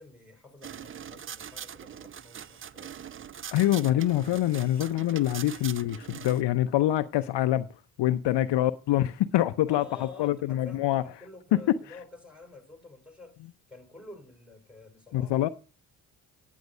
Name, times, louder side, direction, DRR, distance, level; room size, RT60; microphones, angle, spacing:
voice 1, 0.0-2.9 9.7-13.4 13.7-15.4, left 3 dB, ahead, 4.6 m, -49 dB
sound 1, 0.6-6.4, right 8 dB, 30° right, 0.4 m, -42 dB
voice 2, 3.5-7.6 8.0-9.8 10.2-11.0 11.7-11.8 15.1-15.5, left 13 dB, 60° left, 0.6 m, -25 dB
9.3 x 9.2 x 5.4 m
supercardioid pair, 50°, 48 cm